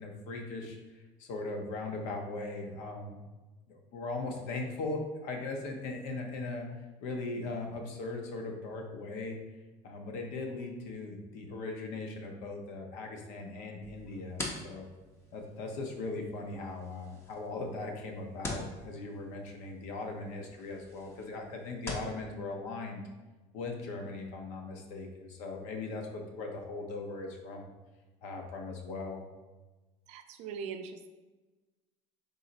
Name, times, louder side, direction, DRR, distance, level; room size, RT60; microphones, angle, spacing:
voice 1, 0.0-3.2 3.7-6.7 7.0-9.4 9.8-14.9 15.3-23.0 23.5-27.7 28.2-29.2, left 3 dB, 70° left, 3 dB, 0.8 m, -39 dB
Elastic band snapping, 13.8-22.2, left 2 dB, 20° left, 0.6 m, -45 dB
voice 2, 30.1-31.1, right 6 dB, 60° right, 7 dB, 0.4 m, -41 dB
3.9 x 3.0 x 3.9 m, 1.2 s
cardioid pair, 165°, 13 cm